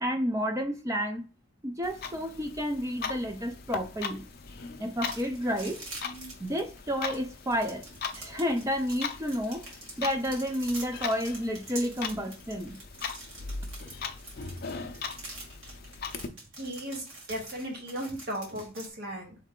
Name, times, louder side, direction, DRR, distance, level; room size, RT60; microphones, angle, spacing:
voice 1, 0.0-1.2 1.6-4.2 4.8-5.8 6.4-7.9 8.1-12.7, equal, 15° right, 0.4 m, -31 dB
Clock, 1.8-16.3, left 5 dB, 45° left, 0.5 m, -40 dB
sound 1, 5.1-18.9, right 2 dB, 70° right, 2.1 m, -45 dB
voice 2, 16.6-19.4, right 1 dB, 50° right, 1.0 m, -36 dB
4.4 x 3.3 x 3.6 m
head